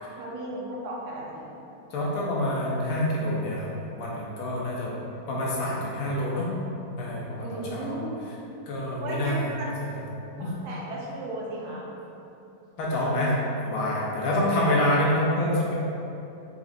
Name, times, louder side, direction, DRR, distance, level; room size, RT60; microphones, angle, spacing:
voice 1, 0.2-1.5 7.4-8.3 9.0-9.7 10.4-11.8, right 1 dB, 70° right, -4 dB, 1.2 m, -35 dB
voice 2, 1.9-3.7 4.0-6.5 7.0-8.0 8.7-9.5 9.9-10.1 10.4-10.5 12.8-13.3 13.6-15.7, left 1 dB, 70° left, -5 dB, 1.0 m, -27 dB
3.9 x 3.4 x 2.5 m, 2.8 s
omnidirectional pair, 1.9 m